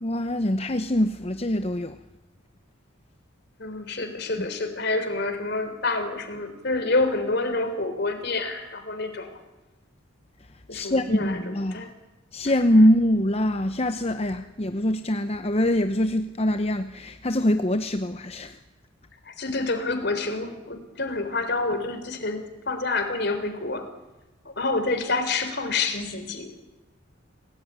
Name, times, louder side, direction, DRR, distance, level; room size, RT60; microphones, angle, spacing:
voice 1, 0.0-2.0 4.4-4.5 10.7-11.9 12.3-18.6, left 1 dB, 30° left, 0.8 m, -23 dB
voice 2, 3.6-9.4 10.7-11.9 12.4-12.9 19.3-23.9 24.5-26.5, left 3 dB, 55° left, 3.9 m, -28 dB
27.0 x 18.0 x 9.6 m
head